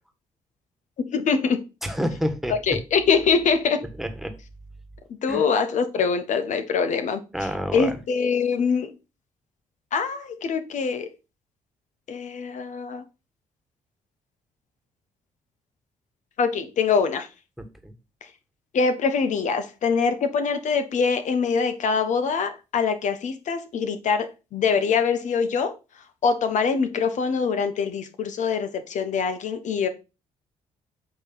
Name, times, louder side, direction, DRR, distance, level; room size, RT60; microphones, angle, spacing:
voice 1, 1.0-1.6 2.7-3.8 5.2-7.2 7.7-8.9 9.9-11.1 12.1-13.0 16.4-17.3 18.7-25.7 26.2-29.9, left 5 dB, 65° left, 9 dB, 1.0 m, -24 dB
voice 2, 1.8-2.8 4.0-4.4 5.3-5.4 7.3-8.0 17.6-17.9, equal, ahead, 8 dB, 1.6 m, -29 dB
8.4 x 3.1 x 5.6 m, 0.29 s
supercardioid pair, 60°, 14 cm